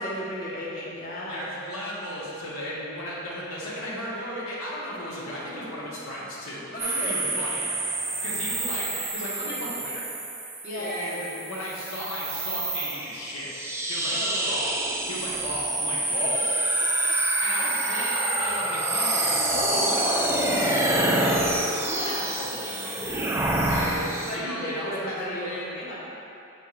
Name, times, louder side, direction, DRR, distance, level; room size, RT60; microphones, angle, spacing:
voice 1, 0.0-1.4 6.7-7.2 8.9-9.0 10.6-11.0 14.1-14.4 17.0-17.1 17.8-18.0 19.5-19.9 21.9-22.3 24.1-26.0, equal, 40° left, -6 dB, 1.1 m, -34 dB
voice 2, 1.3-6.7 7.0-7.8 8.2-10.0 10.8-13.6 13.9-14.2 14.4-14.7 15.1-16.5 17.4-23.0 23.7-25.7, equal, 80° left, -8 dB, 1.3 m, -35 dB
sound 1, 6.8-24.4, right 2 dB, 10° right, 0.3 m, -27 dB
7.5 x 5.1 x 2.5 m, 2.7 s
head